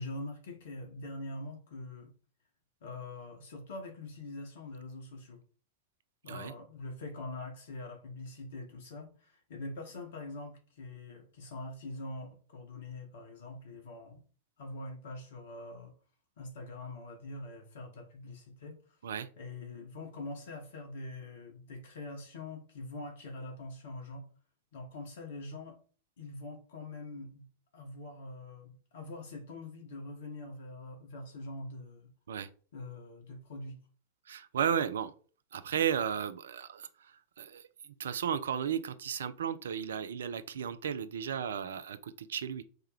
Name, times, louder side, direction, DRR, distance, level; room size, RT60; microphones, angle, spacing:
voice 1, 0.0-2.1 2.8-5.4 6.2-14.2 14.6-15.9 16.4-19.0 19.4-24.2 24.7-25.8 26.2-27.4 27.7-32.1 32.7-33.8, left 2 dB, 60° left, 1.2 m, -44 dB
voice 2, 34.3-35.1 35.5-37.7 38.0-42.6, right 8 dB, 65° right, 0.3 m, -34 dB
4.5 x 2.2 x 3.3 m
figure-of-eight pair, 90°, 0 cm